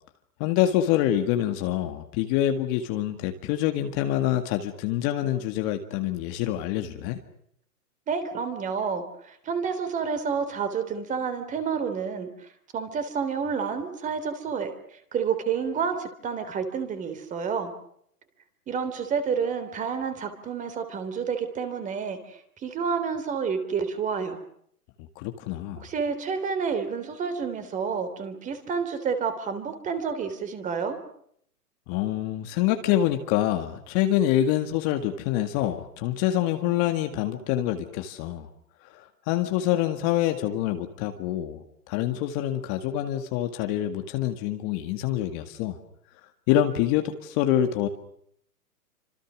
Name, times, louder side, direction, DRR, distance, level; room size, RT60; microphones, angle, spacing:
voice 1, 0.4-7.2 25.2-25.9 31.9-38.5 38.8-45.8 46.5-47.9, left 12 dB, 30° left, 6 dB, 2.0 m, -26 dB
voice 2, 8.1-12.5 12.7-14.7 15.1-17.7 18.7-24.4 25.8-31.0, right 6 dB, 15° right, 9 dB, 3.4 m, -29 dB
29.5 x 26.5 x 6.3 m, 0.69 s
hypercardioid pair, 150°, 47 cm